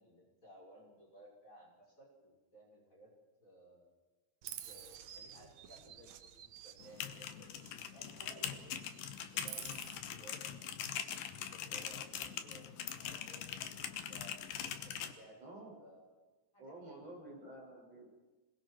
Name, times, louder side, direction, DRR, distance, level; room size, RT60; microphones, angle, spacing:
voice 1, 0.0-3.1 3.4-3.9 4.7-8.8 9.1-14.3 14.6-16.2 16.5-17.4, right 1 dB, 25° left, -2 dB, 5.4 m, -59 dB
Chirp tweet, 4.4-8.4 8.7-10.0, right 10 dB, 65° right, 2.2 m, -51 dB
sound 1, 6.8-15.1, left 9 dB, 90° left, 2.9 m, -42 dB
voice 2, 15.4-15.7 16.6-18.1, right 1 dB, 50° right, -1 dB, 7.5 m, -50 dB
27.0 x 21.0 x 4.7 m, 1.2 s
omnidirectional pair, 3.8 m